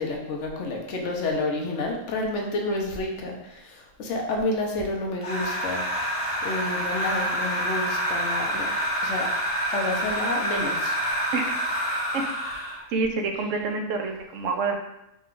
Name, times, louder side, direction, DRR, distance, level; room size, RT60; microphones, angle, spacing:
voice 1, 0.0-5.8 6.4-8.7 9.0-9.3 9.7-10.9, left 2 dB, 70° left, 0 dB, 1.0 m, -29 dB
sound 1, 5.2-12.8, equal, 30° left, 0.9 m, -27 dB
voice 2, 12.9-14.8, right 4 dB, 75° right, 3 dB, 0.9 m, -27 dB
4.1 x 2.3 x 3.7 m, 0.87 s
omnidirectional pair, 1.4 m